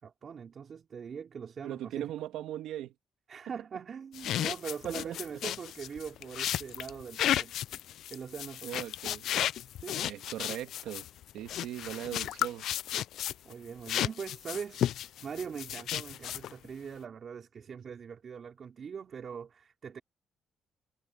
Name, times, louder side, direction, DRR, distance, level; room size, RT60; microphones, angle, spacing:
voice 1, 0.0-2.1 3.3-7.5 8.1-8.9 9.8-10.0 13.4-20.0, right 6 dB, 50° right, 4.6 m, -42 dB
voice 2, 1.6-2.9 4.8-5.2 8.6-9.3 9.9-11.0 11.3-12.7, right 12 dB, 85° right, 2.6 m, -39 dB
sound 1, 4.1-13.5 13.9-16.7, left 11 dB, 75° left, 0.4 m, -33 dB
cardioid pair, 90°, 0 cm